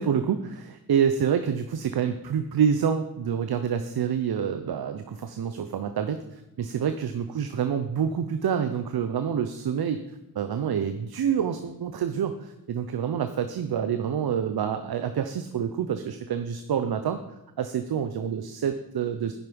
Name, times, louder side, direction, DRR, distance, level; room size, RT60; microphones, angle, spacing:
voice 1, 0.0-10.0 10.3-17.2 17.6-19.3, right 8 dB, 75° right, 8 dB, 0.9 m, -27 dB
10.5 x 9.9 x 5.3 m, 0.95 s
cardioid pair, 60°, 38 cm